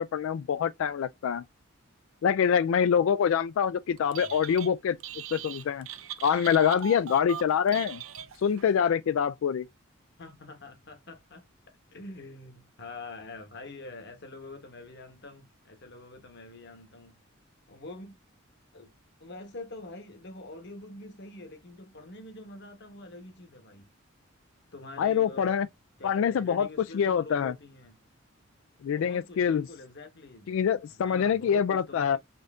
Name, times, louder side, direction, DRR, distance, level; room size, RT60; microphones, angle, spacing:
voice 1, 0.0-1.4 2.2-5.0 5.3-5.9 6.2-8.0 8.4-9.7 25.0-25.7 26.0-26.7 26.9-27.5 28.8-29.7 30.5-32.2, left 7 dB, 70° left, 0.3 m, -25 dB
voice 2, 4.0-4.3 10.2-17.2 17.7-18.2 18.7-18.9 19.2-23.9 24.7-25.6 26.0-28.0 29.0-30.6 31.0-32.2, left 2 dB, 55° left, 1.2 m, -45 dB
Telephone, 4.0-4.7 5.0-8.7, right 8 dB, 80° right, 0.6 m, -40 dB
4.4 x 2.6 x 3.5 m
head